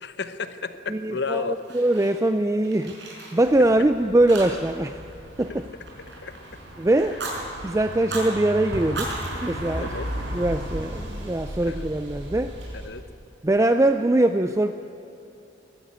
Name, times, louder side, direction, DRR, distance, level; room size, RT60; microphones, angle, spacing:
voice 1, 0.0-1.5 6.2-6.4 9.8-10.1 11.6-11.8 12.8-13.1, left 4 dB, 55° left, 11 dB, 0.9 m, -32 dB
voice 2, 0.9-5.0 5.4-5.7 6.8-7.2 7.6-9.9 10.3-12.5 13.4-14.7, right 1 dB, 15° right, 9 dB, 0.4 m, -22 dB
Fire, 1.3-2.4 2.6-3.9 4.3-4.9 5.1-6.5 7.0-7.4 7.9-8.3 8.8-10.4, right 2 dB, 65° right, 4.9 m, -36 dB
sound 1, 3.4-12.9, equal, 80° right, 6.2 m, -36 dB
21.0 x 13.5 x 9.1 m, 2.9 s
head